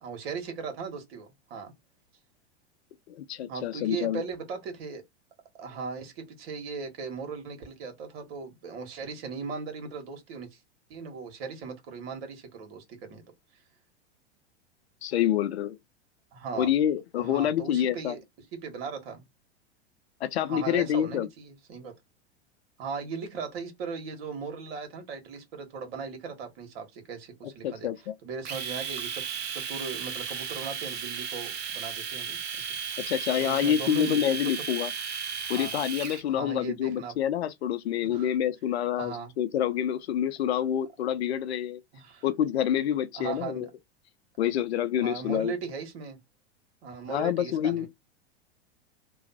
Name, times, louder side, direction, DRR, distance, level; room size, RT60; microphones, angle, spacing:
voice 1, 0.0-1.7 3.5-5.0 5.6-10.6 10.9-13.2 16.3-16.7 17.2-18.2 18.5-19.2 20.5-21.9 22.8-29.2 29.5-32.7 33.4-34.6 35.5-35.7 36.3-37.1 38.1-38.3 39.0-39.3 41.9-42.2 43.2-43.7 45.0-46.2 46.8-47.9, right 5 dB, 60° right, 1.6 m, -38 dB
voice 2, 3.1-4.2 15.0-15.8 16.5-18.1 20.2-21.3 27.6-28.1 33.1-34.9 35.5-41.8 42.2-43.7 44.4-45.5 47.1-47.9, left 10 dB, 70° left, 0.7 m, -27 dB
Domestic sounds home sounds, 28.5-36.2, right 6 dB, 30° right, 0.8 m, -35 dB
3.1 x 2.4 x 4.1 m
hypercardioid pair, 95°, 33 cm